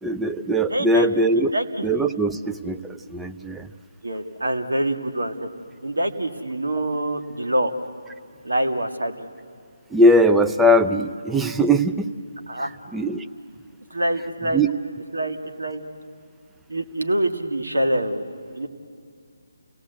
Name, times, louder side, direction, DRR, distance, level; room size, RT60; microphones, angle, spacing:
voice 1, 0.0-1.5 1.8-3.7 9.9-12.1 12.9-13.3 14.5-14.7, equal, 5° right, 7 dB, 0.5 m, -20 dB
voice 2, 0.7-1.1 1.4-1.9 4.0-5.5 5.8-7.7 8.4-9.3 12.5-12.7 13.9-14.6 15.1-15.8 16.7-18.2 18.5-18.7, right 1 dB, 85° right, 5 dB, 1.8 m, -25 dB
29.0 x 18.0 x 8.0 m, 2.2 s
figure-of-eight pair, 155°, 0 cm